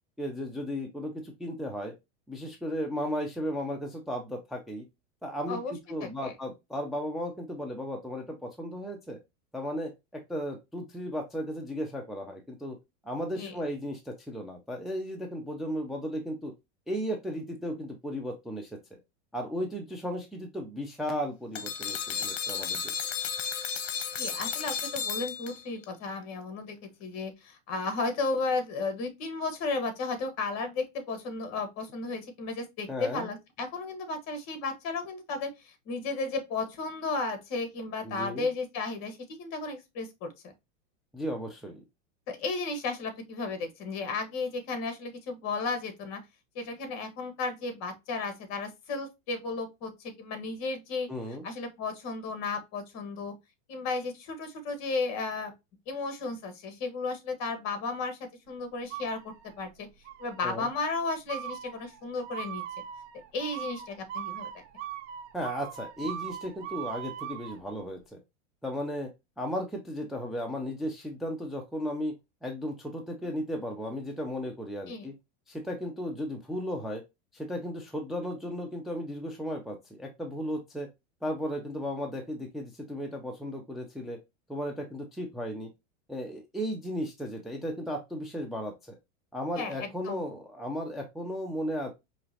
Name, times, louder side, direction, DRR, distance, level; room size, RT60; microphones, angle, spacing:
voice 1, 0.2-1.9 2.3-4.8 5.2-9.2 9.5-12.8 13.0-16.5 16.9-18.8 19.3-23.0 32.9-33.3 38.0-38.5 41.1-41.8 51.1-51.5 60.4-60.7 65.3-68.2 68.6-69.1 69.4-72.1 72.4-75.1 75.5-77.0 77.3-80.9 81.2-84.2 84.5-85.7 86.1-89.0 89.3-91.9, equal, ahead, 0.5 m, -35 dB
voice 2, 6.0-6.3 13.3-13.5 24.2-40.3 42.3-46.2 46.5-51.1 51.4-53.3 53.7-55.5 55.9-58.2 58.5-59.7 60.2-62.6 63.3-64.6 74.9-75.1 89.5-90.2, left 3 dB, 45° left, 1.5 m, -34 dB
sound 1, 21.5-25.8, left 7 dB, 70° left, 0.9 m, -33 dB
sound 2, 58.9-59.7 60.0-60.6 61.3-67.6, right 10 dB, 60° right, 0.9 m, -40 dB
5.1 x 3.0 x 2.8 m
supercardioid pair, 130°, 38 cm